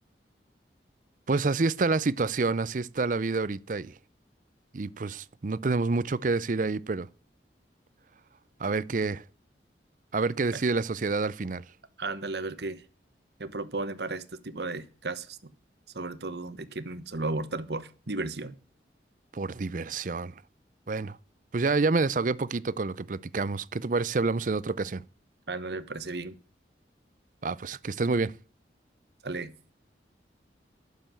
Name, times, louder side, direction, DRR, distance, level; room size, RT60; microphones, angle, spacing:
voice 1, 1.3-3.9 4.7-7.1 8.6-9.2 10.1-11.6 19.3-20.3 20.9-21.2 21.5-25.0 27.4-28.3, right 3 dB, 45° right, 0.5 m, -28 dB
voice 2, 12.0-12.8 13.4-15.5 15.9-18.6 25.5-26.4 29.2-29.5, right 2 dB, 65° right, 1.1 m, -34 dB
12.0 x 6.8 x 7.6 m
head